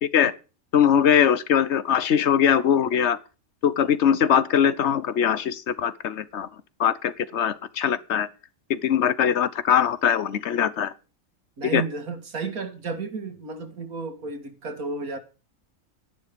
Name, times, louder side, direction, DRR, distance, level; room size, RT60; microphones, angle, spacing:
voice 1, 0.0-0.3 0.7-3.2 3.6-6.5 6.8-8.3 8.7-10.9 11.7-11.8, left 8 dB, 55° left, 1.1 m, -21 dB
voice 2, 11.6-15.2, right 4 dB, 80° right, 2.4 m, -32 dB
12.5 x 11.0 x 5.2 m
omnidirectional pair, 1.5 m